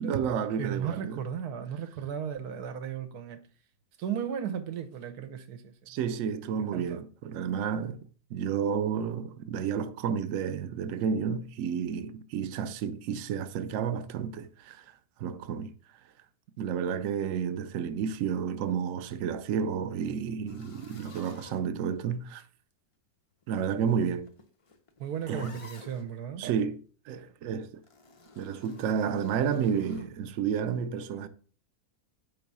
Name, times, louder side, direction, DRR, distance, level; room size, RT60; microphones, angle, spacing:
voice 1, 0.0-1.2 5.9-15.7 16.6-22.4 23.5-24.3 25.3-25.6 26.4-26.8 27.1-27.7 28.4-31.3, right 7 dB, 70° right, 0.8 m, -31 dB
voice 2, 0.6-3.4 4.0-5.9 6.7-7.0 25.0-26.5, right 8 dB, 90° right, 1.3 m, -35 dB
sound 1, 20.5-22.2 23.4-26.1 27.8-30.1, left 3 dB, 55° left, 0.3 m, -51 dB
4.6 x 3.8 x 5.4 m
omnidirectional pair, 1.6 m